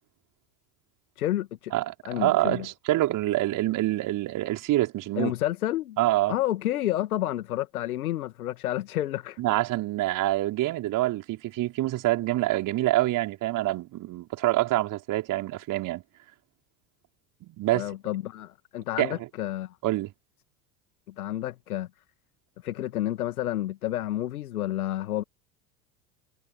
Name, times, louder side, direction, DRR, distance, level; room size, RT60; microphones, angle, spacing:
voice 1, 1.2-1.7 2.0-2.7 5.2-6.0 6.3-9.4 17.7-19.8 21.1-21.9 22.6-25.2, left 13 dB, 65° left, 2.0 m, -30 dB
voice 2, 1.7-5.3 6.0-6.3 9.4-16.0 17.4-17.9 19.0-19.2 19.8-20.1, right 16 dB, 40° right, 4.9 m, -26 dB
figure-of-eight pair, 75°, 46 cm